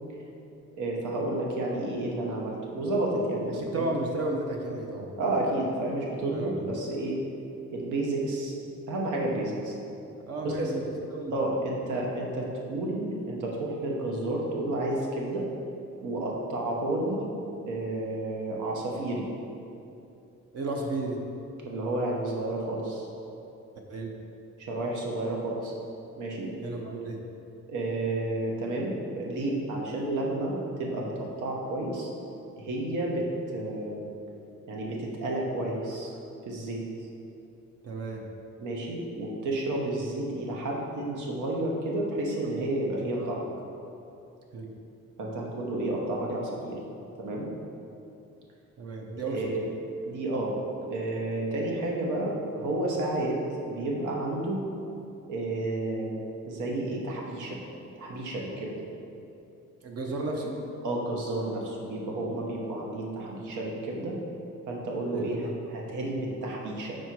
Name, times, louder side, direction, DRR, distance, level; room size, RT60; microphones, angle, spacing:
voice 1, 0.8-3.9 5.2-7.2 7.7-8.5 8.9-9.8 10.4-10.7 11.3-15.5 16.0-17.2 17.7-19.3 21.6-23.1 24.6-25.7 26.1-26.5 27.7-32.1 32.6-33.3 33.5-34.0 34.7-36.1 36.5-36.8 38.6-43.4 45.2-46.8 47.2-47.5 49.3-49.6 50.0-50.6 50.9-54.6 55.3-57.6 58.0-58.7 60.8-64.2 64.7-67.0, right 2 dB, 85° right, -2 dB, 1.1 m, -31 dB
voice 2, 3.6-5.1 6.3-6.6 10.3-10.8 11.1-11.3 20.5-21.2 23.9-24.1 26.6-27.2 37.8-38.2 43.2-43.3 44.5-44.7 48.8-49.5 59.8-60.6 65.1-65.5, right 2 dB, 55° right, 1 dB, 0.7 m, -33 dB
4.6 x 4.4 x 4.6 m, 2.7 s
cardioid pair, 130°, 30 cm